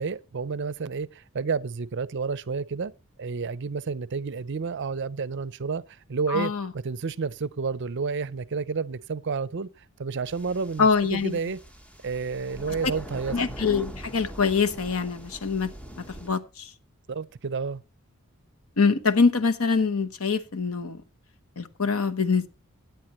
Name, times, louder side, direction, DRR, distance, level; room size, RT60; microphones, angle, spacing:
voice 1, 0.0-2.9 3.2-9.7 10.0-11.6 12.0-13.4 17.1-17.8, right 5 dB, 55° right, 0.5 m, -30 dB
voice 2, 6.3-6.7 10.8-11.4 13.3-15.7 16.0-16.7 18.8-21.0 21.6-22.5, left 5 dB, 75° left, 1.0 m, -24 dB
sound 1, 10.3-16.3, equal, 5° left, 1.0 m, -42 dB
17.0 x 9.2 x 3.0 m
head